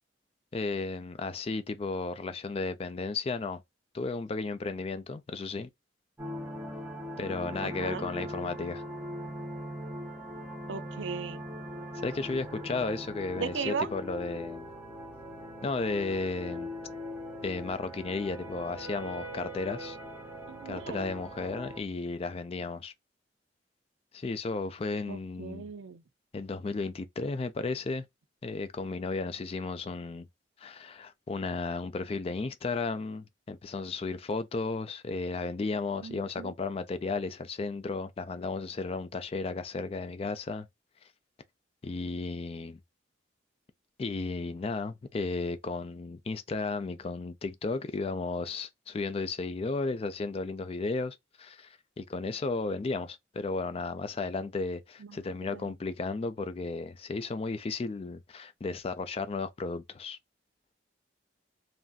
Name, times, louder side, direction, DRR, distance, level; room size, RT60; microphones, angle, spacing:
voice 1, 0.5-3.6 3.9-5.7 7.2-8.8 12.0-14.7 15.6-16.7 17.4-20.0 20.7-22.9 24.1-25.7 26.3-28.1 28.4-30.3 30.6-40.7 41.8-42.8 44.0-60.2, left 3 dB, 30° left, 0.3 m, -34 dB
sound 1, 6.2-21.8, equal, 10° right, 0.7 m, -40 dB
voice 2, 7.6-8.0 10.7-11.4 13.3-13.9 20.5-21.1 25.1-26.0 36.0-36.5 55.0-55.7, right 6 dB, 75° right, 0.4 m, -37 dB
3.2 x 2.5 x 2.2 m
head